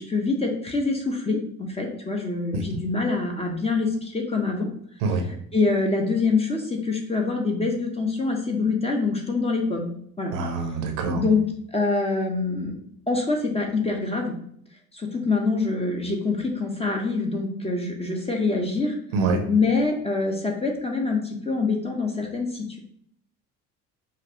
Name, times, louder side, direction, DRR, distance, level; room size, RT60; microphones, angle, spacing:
voice 1, 0.0-4.7 5.5-9.9 10.2-10.3 11.1-11.4 11.7-12.8 13.1-14.3 14.9-18.9 19.5-22.8, left 3 dB, 15° left, 1 dB, 0.9 m, -25 dB
voice 2, 10.3-11.2 19.1-19.4, right 3 dB, 55° right, 4 dB, 0.8 m, -25 dB
5.7 x 2.4 x 3.0 m, 0.66 s
figure-of-eight pair, 60°, 43 cm